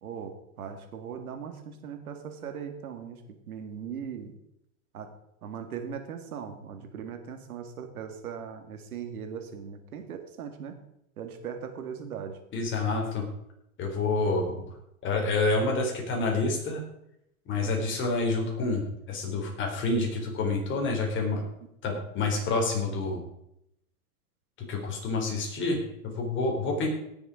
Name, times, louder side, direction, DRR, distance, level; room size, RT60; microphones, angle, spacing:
voice 1, 0.0-0.3 0.6-4.4 4.9-5.1 5.4-10.8 11.2-12.4 17.6-17.9, right 7 dB, 85° right, 7 dB, 2.3 m, -39 dB
voice 2, 12.5-13.3 13.8-14.6 15.0-16.8 17.5-21.4 21.8-23.2 24.7-26.9, left 3 dB, 25° left, 1 dB, 4.0 m, -28 dB
17.5 x 7.2 x 5.0 m, 0.81 s
hypercardioid pair, 140°, 42 cm